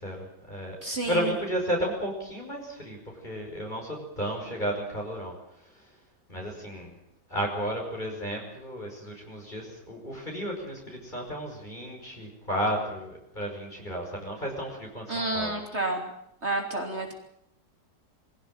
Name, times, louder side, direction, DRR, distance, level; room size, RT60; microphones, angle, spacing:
voice 1, 0.0-0.8 1.1-3.0 3.2-5.3 6.3-6.9 7.3-15.5, equal, 25° left, -1 dB, 5.8 m, -33 dB
voice 2, 0.8-1.3 15.1-16.1 16.4-17.1, right 2 dB, 40° right, 2 dB, 3.5 m, -30 dB
23.5 x 16.5 x 9.0 m, 0.77 s
omnidirectional pair, 1.8 m